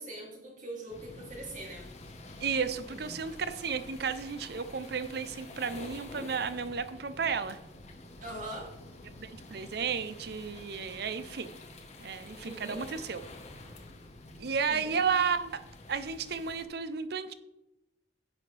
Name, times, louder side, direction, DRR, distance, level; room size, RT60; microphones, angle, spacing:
voice 1, 0.0-1.9 2.9-3.2 8.2-8.7 12.4-12.8 14.7-15.0, right 1 dB, 45° right, -2 dB, 2.9 m, -42 dB
sound 1, 0.9-16.7, left 2 dB, 40° left, 1.2 m, -48 dB
voice 2, 2.4-7.6 9.2-11.5 12.0-13.2 14.4-15.6 15.9-17.3, right 6 dB, 60° right, 13 dB, 0.6 m, -33 dB
10.5 x 7.7 x 3.4 m, 0.94 s
head